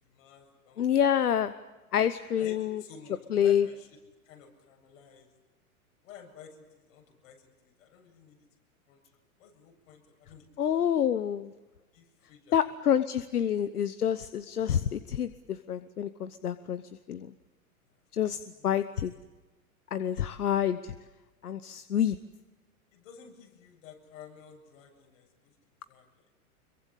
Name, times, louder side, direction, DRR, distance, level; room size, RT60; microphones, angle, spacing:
voice 1, 0.0-1.0 2.4-4.0 4.2-5.3 6.0-8.5 8.9-9.0 9.4-10.9 11.9-12.6 18.3-18.8 22.9-25.5 25.9-26.3, left 7 dB, 60° left, 2 dB, 7.8 m, -52 dB
voice 2, 0.8-1.5 1.9-2.8 3.3-3.7 10.6-11.5 12.5-16.8 17.1-17.3 18.1-19.1 19.9-20.9 21.4-22.2, left 9 dB, 90° left, 13 dB, 1.0 m, -27 dB
25.5 x 23.0 x 8.5 m, 1.2 s
hypercardioid pair, 110°, 44 cm